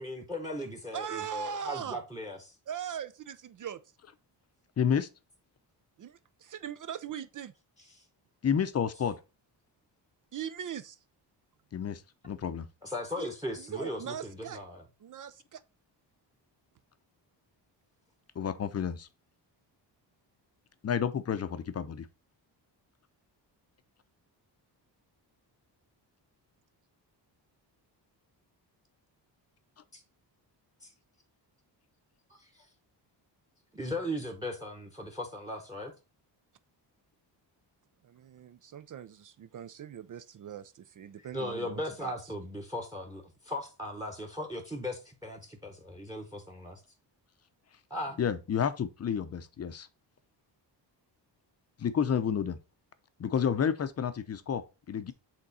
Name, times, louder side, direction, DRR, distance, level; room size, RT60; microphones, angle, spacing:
voice 1, 0.0-2.5 7.9-8.0 12.8-14.8 29.9-30.0 30.8-30.9 32.4-32.7 33.7-35.9 41.2-46.8 47.9-48.2, left 1 dB, 10° right, 1.1 m, -38 dB
voice 2, 0.9-2.0 2.7-3.8 6.0-7.5 10.3-11.0 13.2-13.3 13.6-14.6 15.0-15.6 38.0-42.1, right 8 dB, 45° right, 0.5 m, -40 dB
voice 3, 4.8-5.1 8.4-9.2 11.7-12.7 18.4-19.1 20.8-22.1 48.2-49.9 51.8-52.6 53.2-55.1, left 7 dB, 35° left, 0.7 m, -30 dB
7.9 x 3.7 x 4.2 m
cardioid pair, 130°, 44 cm